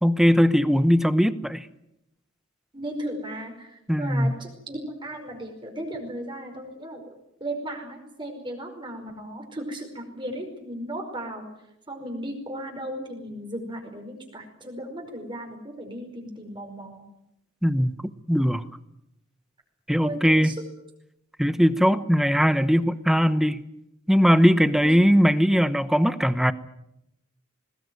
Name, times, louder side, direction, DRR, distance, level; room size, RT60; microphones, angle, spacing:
voice 1, 0.0-1.7 3.9-4.4 17.6-17.9 18.3-18.6 19.9-20.5 21.4-23.6 24.1-26.5, equal, ahead, 0.9 m, -20 dB
voice 2, 2.7-7.1 7.4-11.5 11.9-17.0 20.0-20.6 24.7-25.1, right 1 dB, 25° right, 5.1 m, -36 dB
21.0 x 20.0 x 9.5 m
head